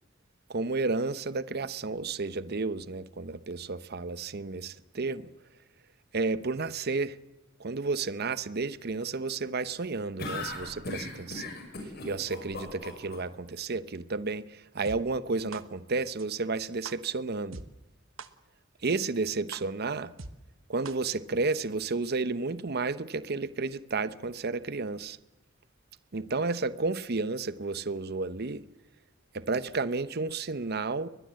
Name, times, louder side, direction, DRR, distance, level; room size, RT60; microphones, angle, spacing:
voice 1, 0.5-5.3 6.1-7.2 7.6-11.5 12.0-17.6 18.8-20.1 20.7-25.2 26.1-28.6 29.3-31.1, right 3 dB, 55° right, 0.8 m, -32 dB
sound 1, 10.2-13.2, left 2 dB, 55° left, 6.3 m, -37 dB
sound 2, 14.8-15.0 15.5-15.6 16.2-16.3 16.8-16.9 17.5-17.6 18.2-18.3 18.8-18.9 19.5-19.6 20.2-20.3 20.8-20.9 21.5-21.6, right 4 dB, 90° right, 1.3 m, -41 dB
22.5 x 20.5 x 7.6 m
head